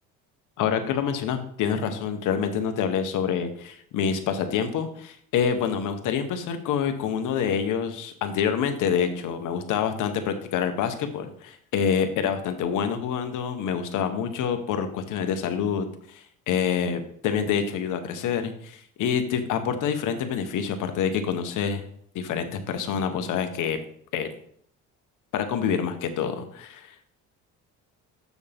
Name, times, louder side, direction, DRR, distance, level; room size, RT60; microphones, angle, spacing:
voice 1, 0.6-21.8 22.1-23.8 24.1-24.3 25.3-26.9, left 7 dB, 65° left, 7 dB, 1.2 m, -27 dB
7.1 x 6.3 x 3.5 m, 0.64 s
cardioid pair, 95°, 33 cm